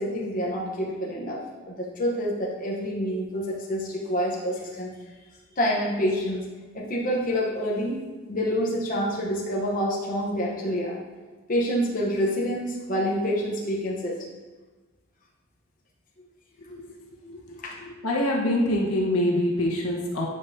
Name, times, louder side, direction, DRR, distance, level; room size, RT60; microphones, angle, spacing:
voice 1, 0.0-4.9 5.6-6.4 6.7-8.0 8.3-11.0 11.5-14.2 16.6-16.8 17.6-17.7, equal, 40° left, -4 dB, 1.0 m, -27 dB
voice 2, 17.3-17.6 18.0-20.3, left 1 dB, 80° left, -2 dB, 1.4 m, -24 dB
9.7 x 5.4 x 2.8 m, 1.3 s
head